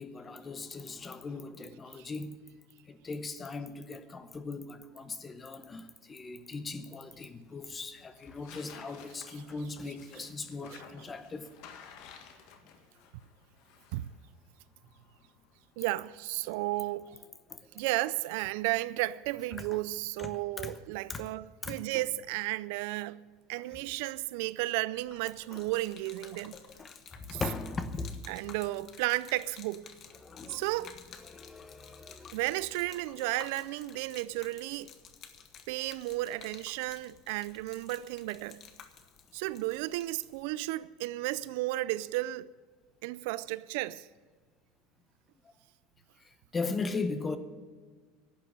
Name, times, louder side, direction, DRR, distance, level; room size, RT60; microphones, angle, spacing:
voice 1, 0.0-2.4 2.9-11.5 17.5-17.6 20.2-20.3 20.6-20.7 21.1-21.2 21.6-21.8 25.5-25.6 26.8-27.0 27.3-28.2 30.2-30.7 31.3-32.4 46.5-47.4, left 3 dB, 15° left, 0.8 m, -38 dB
sound 1, 5.0-17.2, left 7 dB, 55° left, 1.6 m, -56 dB
voice 2, 15.8-17.1 17.7-23.2 23.5-26.6 27.3-27.4 28.3-29.9 30.5-31.0 32.3-34.9 35.7-38.6 39.3-42.5 43.0-44.1, right 18 dB, 65° right, 0.4 m, -33 dB
Gurgling / Liquid, 25.0-40.4, left 7 dB, 30° left, 1.0 m, -53 dB
11.5 x 8.5 x 9.8 m
cardioid pair, 160°, 0 cm